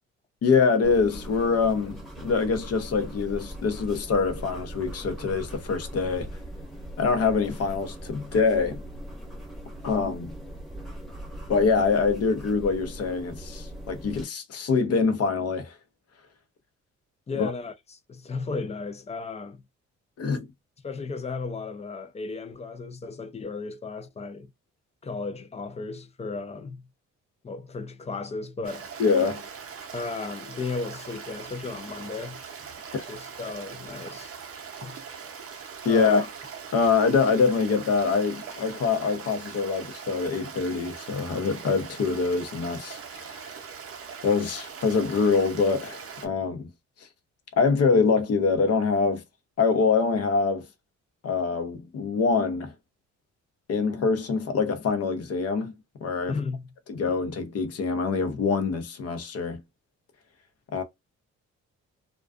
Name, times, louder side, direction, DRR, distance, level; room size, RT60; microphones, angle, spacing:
voice 1, 0.4-6.3 7.0-8.8 9.8-10.4 11.5-15.7 17.4-17.5 20.2-20.5 29.0-29.4 32.9-33.0 35.8-36.2 36.7-43.4 44.2-46.7 47.6-49.2 49.6-50.6 51.2-52.7 53.7-55.7 56.0-56.4 56.9-59.6 60.7-60.8, left 4 dB, 55° left, 0.7 m, -24 dB
sound 1, 0.8-14.2, right 1 dB, ahead, 0.9 m, -40 dB
voice 2, 17.3-19.6 20.8-24.5 25.0-26.8 27.4-28.9 29.9-32.4 33.1-34.3 34.8-35.0 35.9-36.3 56.3-56.6, left 4 dB, 20° left, 0.4 m, -35 dB
Stream, 28.6-46.3, right 6 dB, 50° right, 0.6 m, -41 dB
2.4 x 2.2 x 2.3 m
cardioid pair, 90°, 30 cm